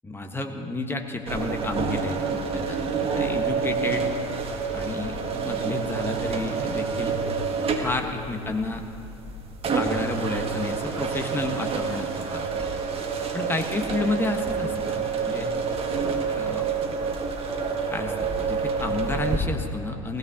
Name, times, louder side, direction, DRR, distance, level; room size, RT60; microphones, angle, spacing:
voice 1, 0.0-2.8 3.1-4.1 4.7-7.2 7.8-8.8 9.7-12.7 13.3-15.5 16.3-17.0 17.9-20.2, left 2 dB, 15° left, 4 dB, 1.4 m, -31 dB
sound 1, 1.3-19.4, right 5 dB, 35° right, 1.6 m, -28 dB
18.5 x 16.5 x 2.9 m, 2.9 s
figure-of-eight pair, 70°, 17 cm